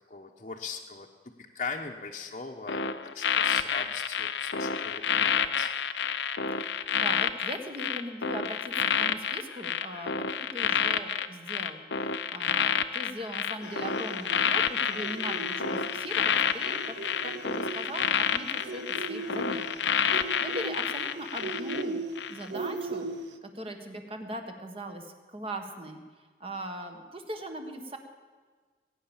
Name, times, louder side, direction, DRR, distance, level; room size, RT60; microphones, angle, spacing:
voice 1, 0.1-2.8 3.1-5.7, left 5 dB, 40° left, -2 dB, 1.0 m, -40 dB
sound 1, 2.7-21.8 22.2-22.4, left 7 dB, 85° left, 0.8 m, -29 dB
voice 2, 6.5-16.9 17.2-19.8 20.1-22.0 22.3-23.1 23.4-28.0, equal, 30° right, 5 dB, 1.6 m, -40 dB
sound 2, 13.6-23.4, right 3 dB, 80° right, 1.0 m, -38 dB
20.5 x 9.4 x 7.2 m, 1.5 s
head